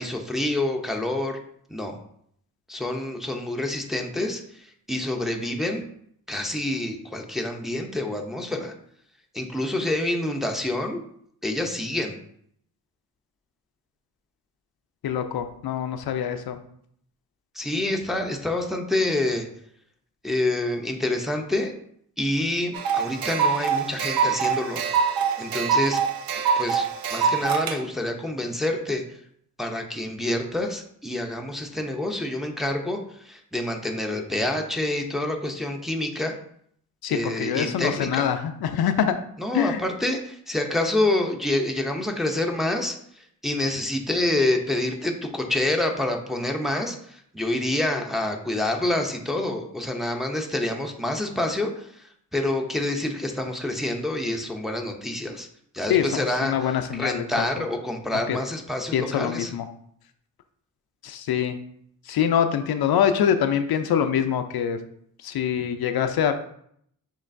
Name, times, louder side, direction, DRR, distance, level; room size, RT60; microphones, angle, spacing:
voice 1, 0.0-1.4 1.7-2.0 2.7-5.8 6.3-8.7 9.3-11.0 11.4-12.2 17.6-19.5 20.2-21.7 22.2-24.8 25.4-26.0 26.6-29.0 29.6-33.0 33.2-36.4 37.1-38.3 39.4-43.0 43.4-52.0 52.3-55.5 55.7-59.5, left 1 dB, ahead, 2 dB, 0.6 m, -27 dB
voice 2, 15.0-16.6 37.0-39.1 39.5-39.8 55.9-57.4 58.1-58.4 58.9-59.7 61.0-61.6 62.1-64.8 65.2-66.3, left 8 dB, 80° left, 8 dB, 0.5 m, -24 dB
sound 1, 22.7-27.8, right 6 dB, 70° right, 0.6 m, -24 dB
6.4 x 3.1 x 2.6 m, 0.67 s
cardioid pair, 90°, 36 cm